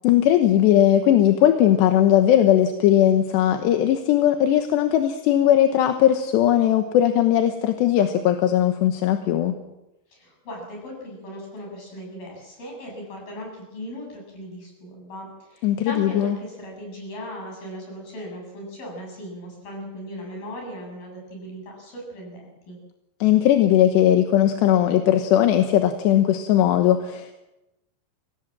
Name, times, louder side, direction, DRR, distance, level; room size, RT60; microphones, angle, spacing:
voice 1, 0.0-9.5 15.6-16.3 23.2-27.3, left 11 dB, 85° left, 6 dB, 3.3 m, -18 dB
voice 2, 10.1-22.8, equal, 55° left, 0 dB, 9.4 m, -38 dB
24.5 x 18.0 x 7.6 m, 0.95 s
omnidirectional pair, 4.9 m